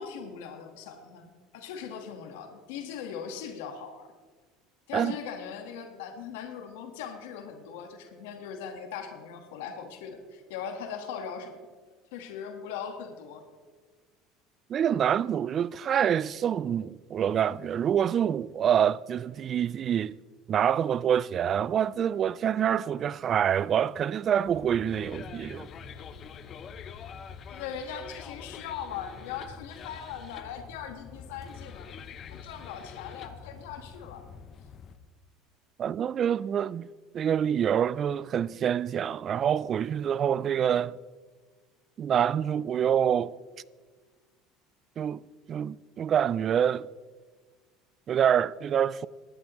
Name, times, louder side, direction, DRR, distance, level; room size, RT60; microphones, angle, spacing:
voice 1, 0.0-4.1 4.9-11.6 12.1-13.4 26.9-27.0 27.5-31.9 32.3-34.2, left 7 dB, 90° left, 1.4 m, -40 dB
voice 2, 14.7-20.2 20.5-25.7 35.8-36.9 37.1-41.0 42.0-43.3 45.0-45.2 45.5-46.9 48.1-49.1, right 9 dB, 40° right, 0.3 m, -26 dB
sound 1, 24.5-35.0, left 6 dB, 40° left, 0.7 m, -45 dB
19.0 x 11.0 x 3.1 m
supercardioid pair, 120°, 0 cm